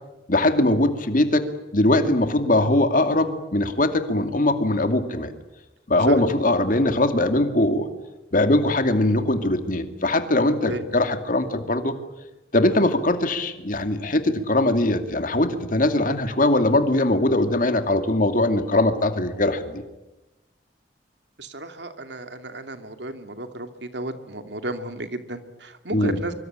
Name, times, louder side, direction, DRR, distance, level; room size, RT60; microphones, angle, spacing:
voice 1, 0.3-1.4 1.7-5.3 5.9-7.9 8.3-11.9 12.5-19.8 25.9-26.2, left 1 dB, 50° left, 8 dB, 2.4 m, -21 dB
voice 2, 21.4-26.3, right 2 dB, 85° right, 8 dB, 2.6 m, -33 dB
24.5 x 24.5 x 8.9 m, 1.0 s
head